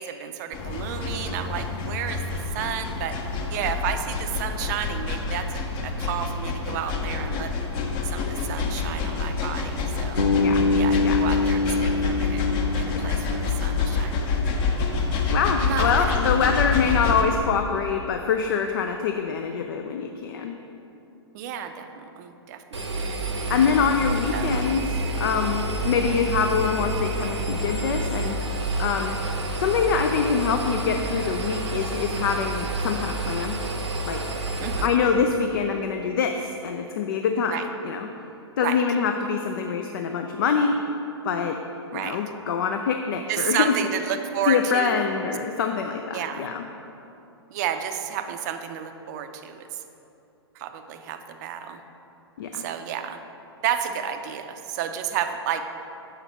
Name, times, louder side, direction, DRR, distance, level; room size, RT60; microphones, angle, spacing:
voice 1, 0.0-2.2 2.5-3.2 3.5-7.5 8.1-10.3 10.8-12.4 12.7-14.3 15.6-16.1 16.8-17.0 21.3-23.1 24.3-24.6 26.0-26.2 34.6-34.9 37.5-37.6 38.6-38.8 41.9-42.2 43.3-45.0 46.1-46.5 47.5-49.6 50.6-51.8 52.5-53.2 53.6-55.6, right 9 dB, 40° right, 7 dB, 0.5 m, -31 dB
sound 1, 0.5-17.2, left 4 dB, 30° left, 0.8 m, -27 dB
Bass guitar, 10.2-14.1, left 3 dB, 90° left, 0.7 m, -24 dB
voice 2, 15.3-20.5 23.5-28.4 28.8-29.2 29.6-33.6 34.0-34.2 34.8-38.1 38.6-40.8 41.2-41.6 41.9-43.8 44.5-46.6 52.4-52.6, left 6 dB, 55° left, 5 dB, 0.4 m, -25 dB
Engine, 22.7-34.9, right 2 dB, 80° right, 0.9 m, -29 dB
7.0 x 5.8 x 4.4 m, 2.9 s
figure-of-eight pair, 110°, 14 cm